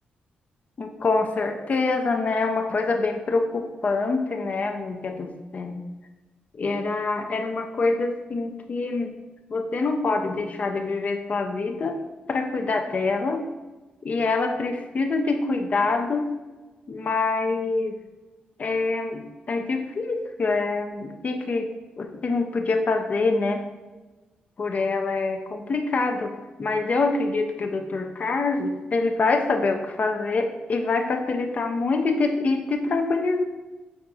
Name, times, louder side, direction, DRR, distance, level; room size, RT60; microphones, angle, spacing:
voice 1, 0.8-5.8 6.6-9.1 9.5-12.0 12.3-13.5 14.0-16.3 16.9-18.0 18.6-21.7 22.0-23.6 24.6-33.4, left 3 dB, 45° left, 5 dB, 0.4 m, -25 dB
4.7 x 2.6 x 2.3 m, 1.2 s
cardioid pair, 65°, 3 cm